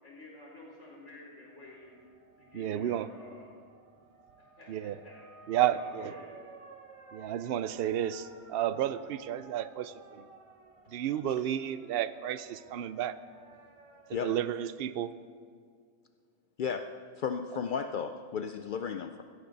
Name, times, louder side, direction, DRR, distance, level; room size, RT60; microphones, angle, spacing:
voice 1, 0.0-2.0 2.4-3.5 4.4-6.4, left 1 dB, 60° left, -5 dB, 4.8 m, -51 dB
sound 1, 1.6-14.4, right 3 dB, 25° right, 0.9 m, -55 dB
voice 2, 2.5-3.1 4.7-5.0 5.5-6.1 7.1-10.2 10.9-13.2 14.1-15.1, right 11 dB, 65° right, 15 dB, 0.6 m, -32 dB
voice 3, 16.6-19.2, left 6 dB, 80° left, 8 dB, 0.4 m, -34 dB
16.0 x 14.5 x 4.0 m, 2.1 s
omnidirectional pair, 1.4 m